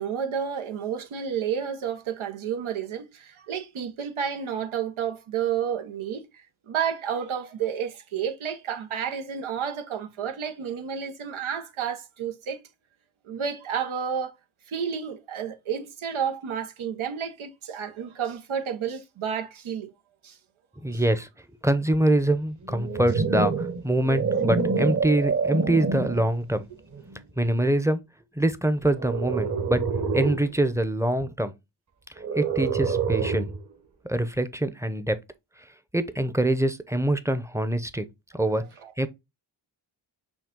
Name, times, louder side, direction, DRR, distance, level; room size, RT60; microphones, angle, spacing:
voice 1, 0.0-12.6 13.2-14.3 14.7-19.9 20.2-20.4 20.9-21.0 38.8-38.9, right 8 dB, 80° right, 1.0 m, -31 dB
voice 2, 20.8-21.3 21.6-26.7 27.4-28.0 28.4-29.8 30.1-31.5 32.4-33.5 34.0-35.2 35.9-38.1 38.3-38.6 39.0-39.1, right 1 dB, 5° right, 0.7 m, -24 dB
sound 1, 22.6-26.3 26.9-27.2 29.0-30.5 32.2-33.6, right 5 dB, 35° right, 1.2 m, -27 dB
6.0 x 2.3 x 3.7 m
cardioid pair, 40°, 48 cm